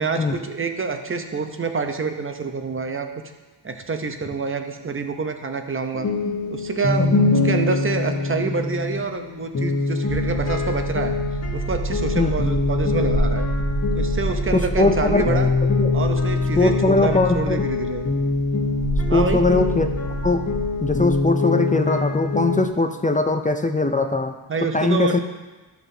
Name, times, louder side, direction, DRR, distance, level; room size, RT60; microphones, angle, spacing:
voice 1, 0.0-3.1 3.6-6.1 6.5-11.1 11.5-13.5 13.9-15.5 15.9-18.1 19.1-19.4 24.5-25.2, right 4 dB, 30° right, 6 dB, 0.7 m, -27 dB
sound 1, 5.9-22.7, left 3 dB, 35° left, 1.2 m, -24 dB
sound 2, 10.1-21.2, right 2 dB, 65° right, 1.3 m, -28 dB
voice 2, 14.5-15.4 15.8-15.9 16.5-17.6 19.1-19.9 20.2-20.5 20.8-24.4 24.7-25.2, left 3 dB, 20° left, 7 dB, 0.4 m, -20 dB
12.0 x 5.9 x 2.7 m, 1.2 s
wide cardioid pair, 90°, 46 cm